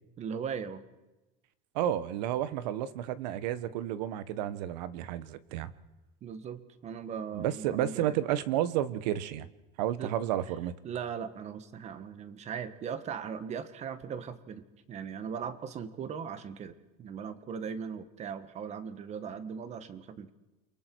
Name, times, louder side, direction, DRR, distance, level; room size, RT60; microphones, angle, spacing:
voice 1, 0.2-0.8 6.2-8.2 10.0-10.1 10.8-20.3, right 7 dB, 30° right, 12 dB, 1.5 m, -39 dB
voice 2, 1.7-5.7 7.3-9.5 9.8-10.7, right 11 dB, 85° right, 15 dB, 1.3 m, -31 dB
29.0 x 23.5 x 4.7 m, 1.0 s
cardioid pair, 145°, 21 cm